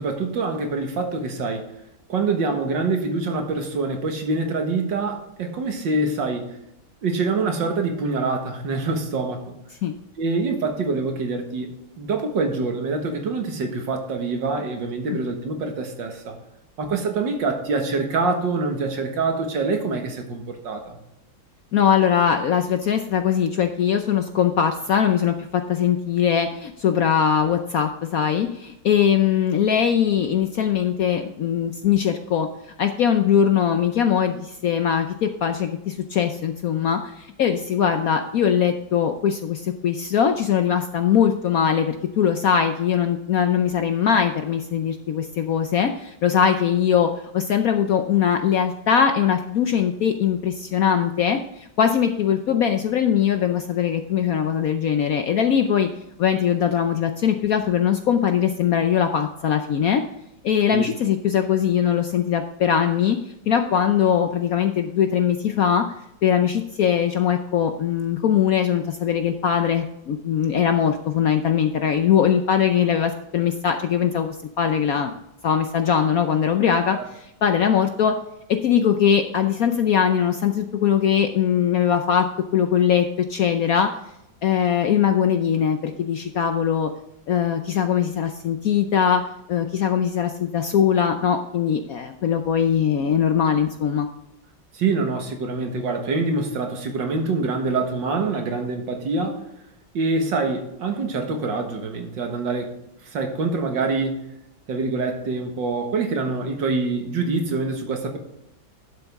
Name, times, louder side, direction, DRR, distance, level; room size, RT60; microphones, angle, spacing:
voice 1, 0.0-1.7 2.1-6.6 7.0-9.5 10.2-16.4 16.8-21.0 60.7-60.9 76.9-77.0 94.7-99.4 99.9-102.7 103.0-104.3 104.7-108.2, right 3 dB, 70° right, 4 dB, 2.1 m, -25 dB
voice 2, 21.7-32.5 32.8-55.9 56.2-60.0 60.4-63.2 63.5-65.8 66.2-75.1 75.4-78.1 78.6-82.3 82.5-83.9 84.4-86.9 87.3-89.2 89.5-94.1, left 8 dB, 65° left, 7 dB, 0.9 m, -21 dB
11.5 x 7.0 x 3.5 m, 0.84 s
omnidirectional pair, 2.1 m